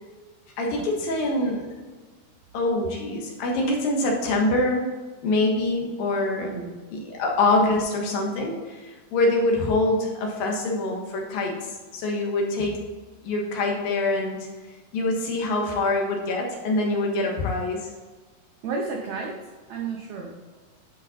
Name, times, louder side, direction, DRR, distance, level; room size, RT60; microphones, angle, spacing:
voice 1, 0.6-1.7 2.5-4.9 5.2-6.5 6.9-11.6 11.9-12.8 13.2-14.4 14.9-17.8, left 2 dB, 70° left, 0 dB, 3.0 m, -24 dB
voice 2, 6.3-6.8 18.6-19.4 19.7-20.4, right 4 dB, 85° right, 1 dB, 1.6 m, -32 dB
10.5 x 5.2 x 4.3 m, 1.3 s
omnidirectional pair, 4.5 m